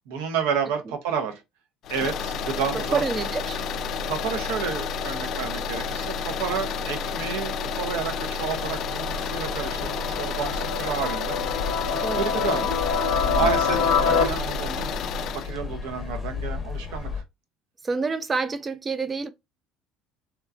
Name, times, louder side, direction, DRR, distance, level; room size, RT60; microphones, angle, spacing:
voice 1, 0.1-1.4 1.9-3.0 4.1-11.4 12.1-12.7 13.3-14.9 15.3-17.1, right 6 dB, 85° right, 0.6 m, -30 dB
sound 1, 1.8-15.5, left 5 dB, 60° left, 0.3 m, -30 dB
voice 2, 2.9-3.6 12.0-12.7 13.4-13.5 17.8-19.3, right 4 dB, 30° right, 0.4 m, -28 dB
sound 2, 8.5-17.2, left 4 dB, 25° left, 0.6 m, -35 dB
sound 3, 8.7-14.2, left 6 dB, 85° left, 0.7 m, -26 dB
2.9 x 2.2 x 2.4 m
supercardioid pair, 90°, 0 cm